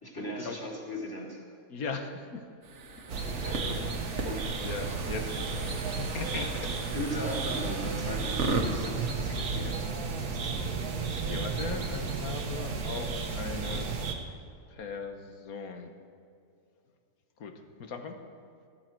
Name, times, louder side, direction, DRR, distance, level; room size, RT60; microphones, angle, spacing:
voice 1, 0.0-1.4 3.1-4.6 5.8-6.4 6.9-10.5, left 1 dB, 15° left, -3 dB, 2.7 m, -39 dB
voice 2, 1.7-2.4 3.3-3.4 4.2-4.4 4.6-6.7 8.2-8.3 11.1-13.9 14.7-15.9 17.4-18.2, left 4 dB, 75° left, 6 dB, 1.5 m, -39 dB
sound 1, 2.6-8.7, right 3 dB, 55° right, 1.5 m, -37 dB
sound 2, 3.1-14.1, right 4 dB, 80° right, 1.6 m, -33 dB
14.5 x 13.5 x 4.5 m, 2.4 s
omnidirectional pair, 1.5 m